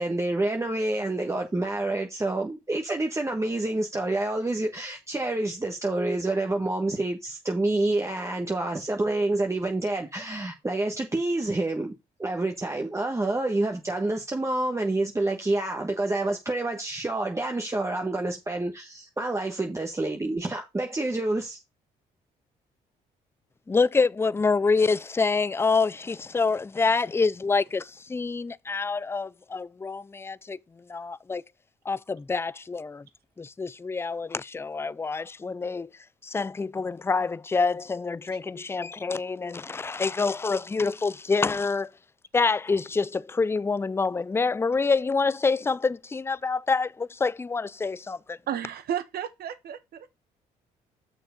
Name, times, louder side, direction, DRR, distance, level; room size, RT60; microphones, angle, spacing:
voice 1, 0.0-11.9 12.2-21.6, right 2 dB, 15° right, 1.2 m, -28 dB
voice 2, 23.7-30.6 30.9-31.4 31.9-33.1 33.4-35.9 36.2-41.9 42.3-48.4, left 4 dB, 15° left, 0.4 m, -26 dB
voice 3, 48.5-50.2, right 9 dB, 65° right, 1.2 m, -33 dB
6.4 x 4.6 x 5.7 m
supercardioid pair, 65°, 17 cm